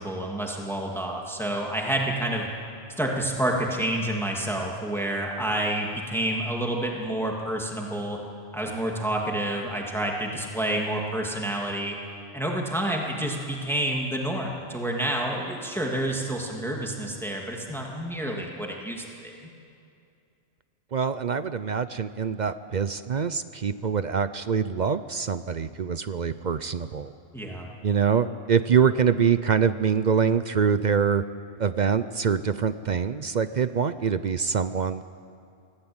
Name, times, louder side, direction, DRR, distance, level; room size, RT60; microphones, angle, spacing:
voice 1, 0.0-2.5 3.0-8.2 8.5-11.9 12.3-19.5 27.3-27.7, right 1 dB, ahead, -1 dB, 2.5 m, -29 dB
voice 2, 20.9-27.1 27.8-31.2 31.6-35.0, right 6 dB, 50° right, 12 dB, 0.6 m, -24 dB
24.5 x 16.0 x 8.9 m, 2.5 s
omnidirectional pair, 1.3 m